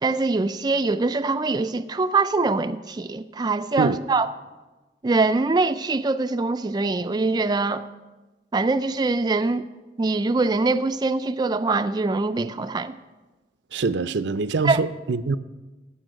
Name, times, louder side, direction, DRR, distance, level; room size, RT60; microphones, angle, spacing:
voice 1, 0.0-4.3 5.0-7.9 8.5-9.6 10.0-13.0 14.6-14.8, right 3 dB, 25° right, 0.3 m, -23 dB
voice 2, 13.7-15.4, right 4 dB, 75° right, 0.5 m, -24 dB
14.0 x 5.9 x 9.0 m
head